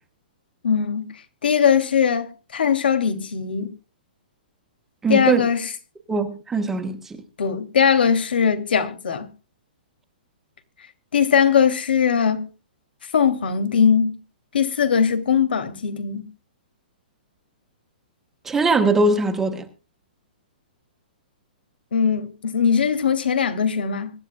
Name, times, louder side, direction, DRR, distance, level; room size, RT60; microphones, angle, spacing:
voice 1, 0.6-1.1 1.4-3.7 5.1-5.7 7.4-9.3 11.1-12.5 13.1-14.2 14.5-16.2 21.9-24.1, left 7 dB, 85° left, 2.7 m, -20 dB
voice 2, 5.0-5.5 6.1-7.2 18.4-19.7, right 3 dB, 5° right, 1.2 m, -21 dB
25.0 x 11.5 x 2.3 m
hypercardioid pair, 175°, 5 cm